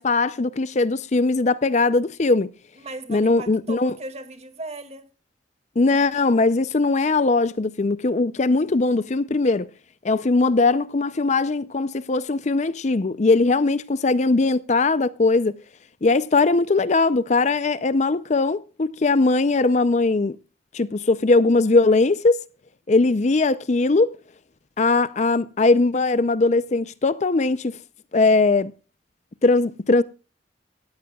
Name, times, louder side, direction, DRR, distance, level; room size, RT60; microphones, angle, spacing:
voice 1, 0.0-2.5 3.1-3.9 5.8-9.7 10.0-15.5 16.0-20.4 20.7-22.4 22.9-24.2 24.8-27.8 28.1-28.7 29.4-30.0, left 3 dB, 40° left, 0.5 m, -20 dB
voice 2, 2.8-5.0, right 2 dB, 35° right, 2.1 m, -37 dB
18.5 x 14.0 x 2.3 m
head